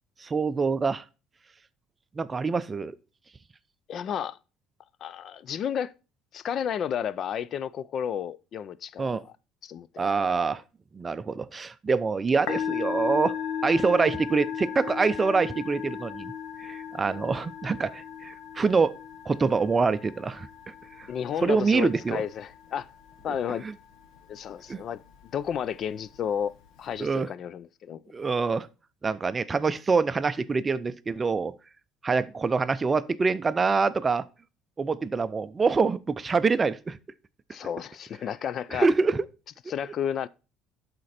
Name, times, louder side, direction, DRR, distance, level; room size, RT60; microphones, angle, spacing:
voice 1, 0.2-1.0 2.2-3.0 9.0-9.2 10.0-10.6 10.9-13.3 13.6-16.3 16.6-19.0 19.3-20.5 21.4-22.2 23.6-23.7 24.7-24.8 27.0-27.3 28.1-28.7 29.0-31.5 32.0-34.3 34.8-37.0 38.7-39.2, right 4 dB, 25° right, 0.4 m, -25 dB
voice 2, 3.9-4.4 5.0-5.9 6.3-9.3 9.6-10.2 21.1-22.9 23.2-23.6 24.3-25.0 25.3-28.0 37.5-38.9 39.7-40.3, left 8 dB, 45° left, 0.4 m, -32 dB
Musical instrument, 12.3-27.0, left 8 dB, 70° left, 1.2 m, -37 dB
11.5 x 4.3 x 4.2 m
cardioid pair, 115°, 0 cm